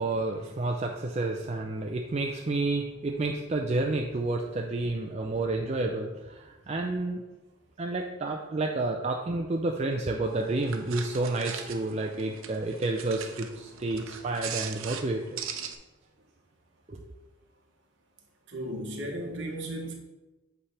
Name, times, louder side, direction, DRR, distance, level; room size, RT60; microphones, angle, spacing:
voice 1, 0.0-7.2 7.8-15.4 16.9-17.1, right 2 dB, 30° right, 2 dB, 0.4 m, -30 dB
sound 1, 10.2-15.7, right 8 dB, 75° right, 0.7 m, -40 dB
voice 2, 18.5-19.9, right 1 dB, 55° right, 0 dB, 1.3 m, -35 dB
8.3 x 3.4 x 5.5 m, 1.1 s
head